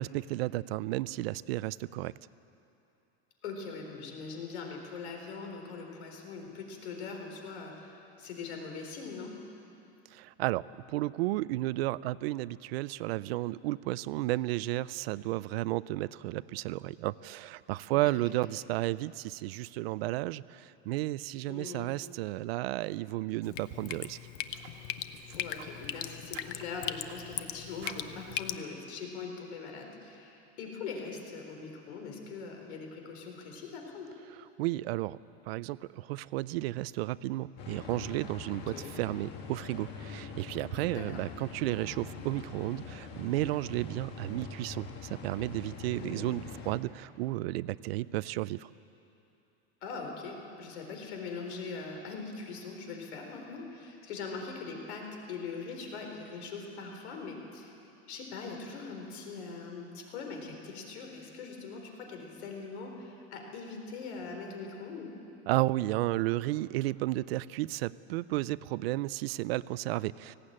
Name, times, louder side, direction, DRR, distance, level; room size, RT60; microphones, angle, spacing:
voice 1, 0.0-2.1 10.1-24.2 34.6-35.2 35.5-48.7 65.5-70.3, right 17 dB, 70° right, 19 dB, 0.5 m, -33 dB
voice 2, 3.4-9.3 17.9-18.0 21.5-21.9 25.3-34.1 38.7-38.9 40.9-41.2 45.9-46.3 49.8-57.7 58.1-65.1, left 4 dB, 85° left, 2 dB, 4.1 m, -42 dB
sound 1, 23.3-23.5 23.9-24.0 24.5-24.8 25.1-26.1 26.3-27.5 27.8-28.1, right 9 dB, 85° right, 2.1 m, -51 dB
Drip, 23.4-28.6, left 12 dB, 50° left, 0.7 m, -39 dB
sound 2, 37.6-46.8, left 4 dB, 30° left, 1.7 m, -44 dB
18.0 x 16.5 x 8.8 m, 2.9 s
supercardioid pair, 175°, 32 cm